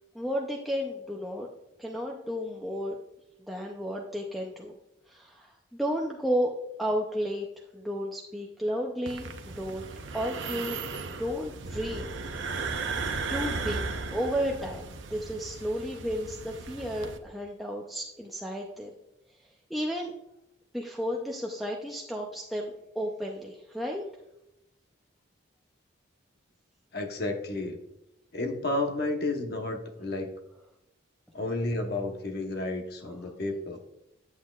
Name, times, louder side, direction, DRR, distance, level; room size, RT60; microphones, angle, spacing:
voice 1, 0.1-1.5 1.8-2.9 3.5-4.8 5.1-6.5 6.8-7.5 7.7-9.9 10.1-10.8 11.2-12.1 13.3-13.8 14.1-19.0 19.7-20.1 20.7-24.0, equal, ahead, -2 dB, 0.5 m, -32 dB
sound 1, 9.1-17.2, right 4 dB, 70° right, 0.7 m, -36 dB
voice 2, 26.9-27.8 28.3-30.3 31.3-33.8, left 2 dB, 55° left, 4 dB, 1.0 m, -31 dB
9.4 x 8.2 x 2.4 m, 0.88 s
head